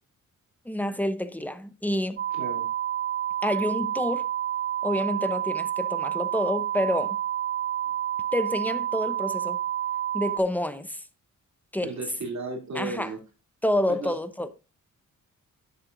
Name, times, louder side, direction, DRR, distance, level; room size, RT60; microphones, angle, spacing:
voice 1, 0.7-2.2 3.4-4.3 4.8-7.2 8.3-9.6 10.1-11.0 11.7-11.9 12.7-13.1 13.6-14.5, left 1 dB, 5° left, 0.8 m, -28 dB
sound 1, 2.2-10.4, right 11 dB, 35° right, 0.5 m, -29 dB
voice 2, 2.3-2.7 11.8-13.2 13.9-14.2, right 3 dB, 55° right, 3.1 m, -34 dB
11.0 x 7.5 x 2.6 m
cardioid pair, 105°, 33 cm